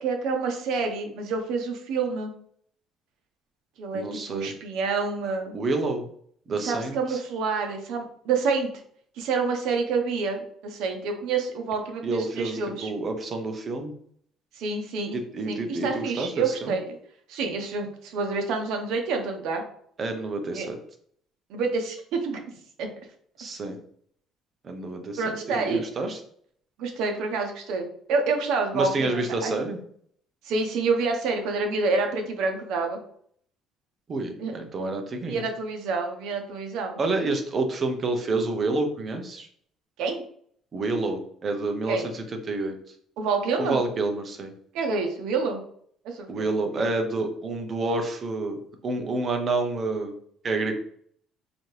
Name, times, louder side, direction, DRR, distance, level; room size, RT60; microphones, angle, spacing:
voice 1, 0.0-2.3 3.8-5.6 6.5-8.7 9.2-12.9 14.5-15.2 15.5-17.0 17.3-19.6 20.5-20.7 21.5-22.4 22.8-22.9 25.2-25.8 26.8-29.5 30.4-33.0 34.4-34.5 35.3-37.0 40.0-40.2 41.9-42.1 43.2-43.8 44.7-45.6 46.0-46.5 46.7-46.9, right 4 dB, 65° right, 4 dB, 0.8 m, -28 dB
voice 2, 3.9-4.5 5.5-6.0 6.5-7.2 12.0-13.9 15.1-16.8 20.0-20.8 23.4-23.8 24.6-25.2 25.5-26.2 28.7-29.8 34.1-35.4 37.0-39.5 40.7-42.8 43.6-44.5 46.3-50.1 50.4-50.8, right 2 dB, 25° right, 5 dB, 0.6 m, -28 dB
4.0 x 2.8 x 3.2 m, 0.62 s
cardioid pair, 170°, 0 cm